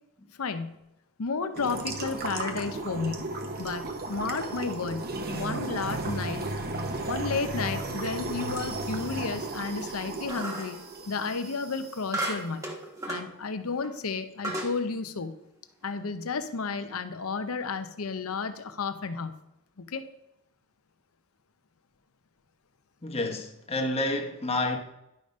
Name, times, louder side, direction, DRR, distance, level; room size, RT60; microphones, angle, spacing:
voice 1, 0.4-0.8 1.2-3.3 3.6-6.5 7.1-10.8 11.1-12.7 13.1-15.4 15.8-19.4 19.8-20.0, left 4 dB, 70° left, 0.8 m, -32 dB
sound 1, 1.5-12.0, right 2 dB, 45° right, 1.1 m, -34 dB
Panela- Pan, 10.3-10.8 12.1-13.3 13.8-13.9 14.4-14.8, right 1 dB, 15° right, 1.3 m, -33 dB
voice 2, 23.0-24.8, left 2 dB, 25° left, 1.1 m, -29 dB
11.0 x 5.1 x 5.3 m
head